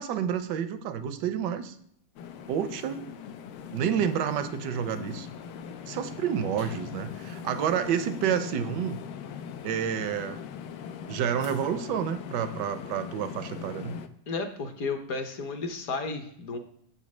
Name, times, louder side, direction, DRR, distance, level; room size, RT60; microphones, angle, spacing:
voice 1, 0.0-1.7 2.5-3.0 3.7-5.3 5.8-9.0 9.6-10.4 11.1-13.9, right 8 dB, 80° right, 11 dB, 1.2 m, -29 dB
sound 1, 2.2-14.1, left 7 dB, 80° left, 1.2 m, -41 dB
voice 2, 14.3-16.6, left 4 dB, 60° left, 7 dB, 1.2 m, -33 dB
7.0 x 4.2 x 6.0 m, 0.67 s
omnidirectional pair, 1.9 m